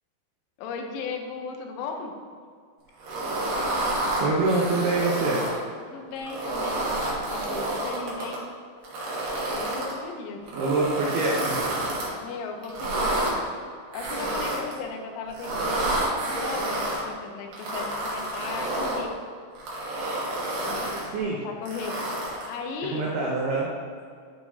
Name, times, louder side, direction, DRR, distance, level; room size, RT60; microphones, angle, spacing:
voice 1, 0.6-2.2 5.9-6.9 7.3-8.4 9.4-10.4 12.2-13.4 13.9-19.1 20.7-20.9 21.2-22.0 22.5-23.1, left 5 dB, 85° left, 4 dB, 3.2 m, -36 dB
sound 1, 3.0-5.6 6.2-8.4 8.8-9.9 10.5-12.1 12.6-13.3 13.9-14.8 15.3-17.0 17.5-19.0 19.5-21.1 21.7-22.5, right 1 dB, 65° right, 2.7 m, -29 dB
voice 2, 4.2-5.4 10.5-11.6 21.1-21.4 22.9-23.7, right 3 dB, 85° right, -4 dB, 2.2 m, -25 dB
11.0 x 4.6 x 2.7 m, 2.1 s
omnidirectional pair, 5.7 m